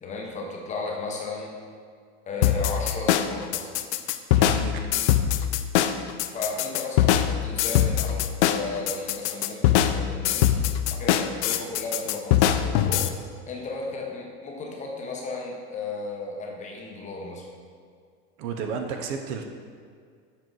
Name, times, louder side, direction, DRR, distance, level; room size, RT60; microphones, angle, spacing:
voice 1, 0.0-1.5 2.3-3.8 6.2-10.6 10.9-13.1 13.5-17.5, left 3 dB, 20° left, -1 dB, 0.8 m, -34 dB
sound 1, 2.4-13.1, left 11 dB, 75° left, 0.5 m, -22 dB
voice 2, 4.4-4.9 18.4-19.4, right 6 dB, 50° right, 5 dB, 0.6 m, -32 dB
7.2 x 4.6 x 3.9 m, 2.1 s
supercardioid pair, 145°, 35 cm